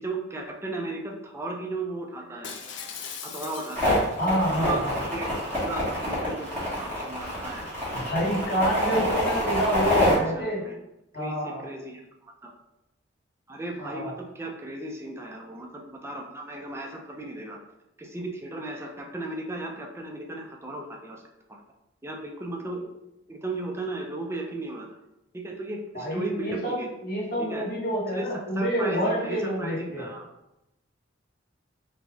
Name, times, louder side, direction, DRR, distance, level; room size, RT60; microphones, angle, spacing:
voice 1, 0.0-2.5 3.2-4.0 4.5-5.3 5.6-7.6 10.0-10.8 11.1-12.5 13.5-17.6 18.0-21.2 21.5-21.6 22.0-22.9 23.3-24.9 25.3-26.9 27.4-27.7 28.1-28.3 28.6-30.3, right 2 dB, 15° right, 1 dB, 0.4 m, -35 dB
Shatter, 2.4-4.3 4.7-5.0, left 6 dB, 70° left, 0.4 m, -39 dB
sound 1, 3.8-10.1, left 1 dB, 10° left, 1.3 m, -26 dB
voice 2, 4.2-5.0 7.9-10.6 11.1-11.6 13.8-14.1 25.9-30.1, equal, 50° left, -7 dB, 1.2 m, -28 dB
3.3 x 2.5 x 3.4 m, 0.90 s
head